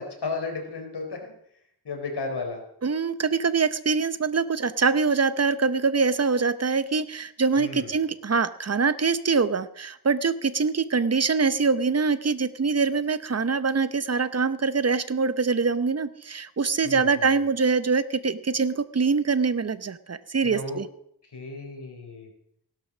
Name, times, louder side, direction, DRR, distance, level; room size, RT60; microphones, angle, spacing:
voice 1, 0.0-1.3 1.8-2.6 7.6-7.9 16.8-17.4 20.4-20.8 21.2-22.3, left 3 dB, 75° left, 3 dB, 3.9 m, -34 dB
voice 2, 2.8-20.9, right 4 dB, 40° right, 14 dB, 0.8 m, -24 dB
16.0 x 12.0 x 6.1 m, 0.70 s
wide cardioid pair, 115°, 40 cm